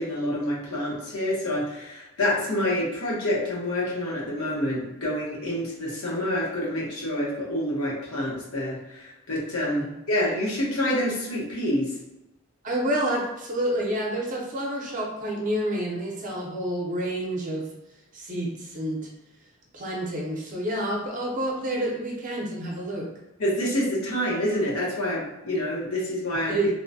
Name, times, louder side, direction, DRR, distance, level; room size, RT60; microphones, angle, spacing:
voice 1, 0.0-11.9 23.4-26.5, left 1 dB, 75° left, -4 dB, 1.0 m, -27 dB
voice 2, 12.6-17.6 18.1-19.0 19.7-23.1 26.5-26.7, right 1 dB, 35° right, -1 dB, 0.6 m, -29 dB
2.9 x 2.1 x 2.6 m, 0.93 s
head